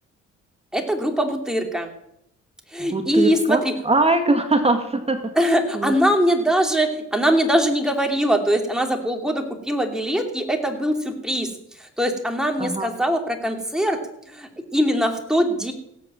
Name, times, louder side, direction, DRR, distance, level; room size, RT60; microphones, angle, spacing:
voice 1, 0.7-1.9 2.7-3.7 5.3-11.5 11.8-14.0 14.3-15.7, equal, ahead, 3 dB, 3.0 m, -22 dB
voice 2, 2.8-5.3 5.7-5.9 12.6-12.9, right 2 dB, 20° right, 6 dB, 1.9 m, -22 dB
16.5 x 8.4 x 7.5 m, 0.76 s
cardioid pair, 90°, 30 cm